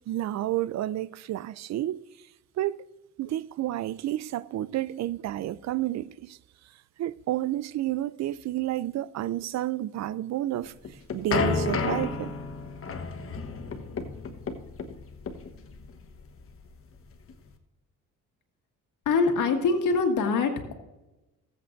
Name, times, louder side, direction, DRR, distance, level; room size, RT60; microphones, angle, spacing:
voice 1, 0.1-2.0 2.6-2.8 3.2-6.4 7.0-12.3, right 14 dB, 65° right, 0.5 m, -30 dB
sound 1, 10.7-17.5, left 4 dB, 45° left, 1.3 m, -32 dB
voice 2, 19.1-20.7, left 4 dB, 80° left, 1.9 m, -24 dB
19.5 x 8.2 x 2.6 m
cardioid pair, 90°, 30 cm